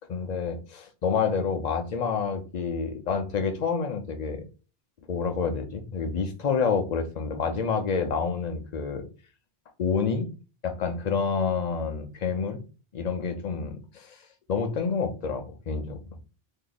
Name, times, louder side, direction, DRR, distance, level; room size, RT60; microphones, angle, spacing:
voice 1, 0.1-4.4 5.1-9.1 9.8-10.3 10.6-12.6 12.9-14.2 14.5-16.0, left 5 dB, 50° left, 0.6 m, -28 dB
3.0 x 2.7 x 3.8 m
omnidirectional pair, 1.1 m